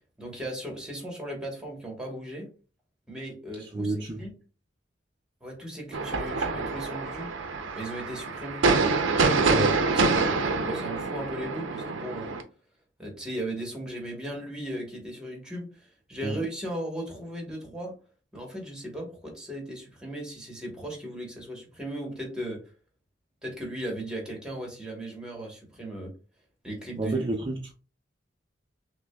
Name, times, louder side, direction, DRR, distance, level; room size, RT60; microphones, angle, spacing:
voice 1, 0.2-2.5 3.1-4.3 5.4-7.3 7.8-8.6 9.6-12.4 13.0-17.9 18.3-22.6 23.4-26.1 26.6-27.2, right 1 dB, 5° right, 1.2 m, -37 dB
voice 2, 3.7-4.2 9.5-9.8 16.2-16.4 27.0-27.7, right 2 dB, 25° right, 0.4 m, -29 dB
sound 1, 5.9-12.4, right 3 dB, 80° right, 0.6 m, -26 dB
5.9 x 2.2 x 2.2 m
head